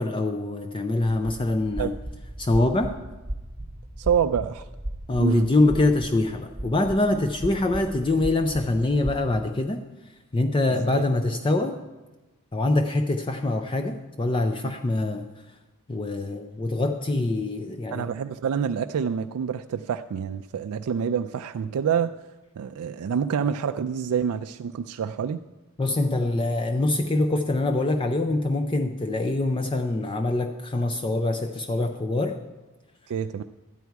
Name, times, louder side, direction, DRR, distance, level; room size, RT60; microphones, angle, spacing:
voice 1, 0.0-1.9 2.4-3.0 5.1-9.8 10.3-11.8 12.5-15.3 15.9-18.1 25.8-32.4, left 2 dB, 20° left, 6 dB, 0.4 m, -24 dB
sound 1, 1.6-9.2, right 1 dB, 15° right, 0.8 m, -37 dB
voice 2, 4.0-4.7 5.2-5.5 10.7-11.1 17.9-22.1 22.6-25.4 33.1-33.4, right 7 dB, 80° right, 8 dB, 0.3 m, -27 dB
12.5 x 9.4 x 4.6 m, 1.1 s
head